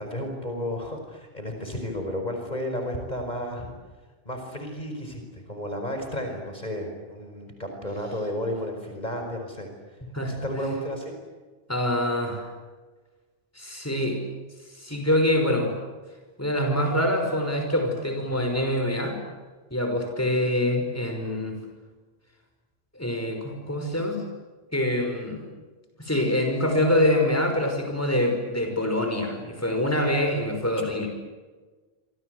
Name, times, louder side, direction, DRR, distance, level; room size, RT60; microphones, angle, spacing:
voice 1, 0.0-3.7 4.3-9.7 10.3-11.1 30.6-30.7, equal, 45° left, 4 dB, 5.3 m, -32 dB
voice 2, 11.7-12.5 13.6-14.2 14.8-15.7 16.4-19.2 19.7-21.6 22.9-24.2 24.7-25.4 26.0-31.1, left 1 dB, 15° left, 3 dB, 5.7 m, -25 dB
28.0 x 26.0 x 8.1 m, 1.3 s
omnidirectional pair, 1.1 m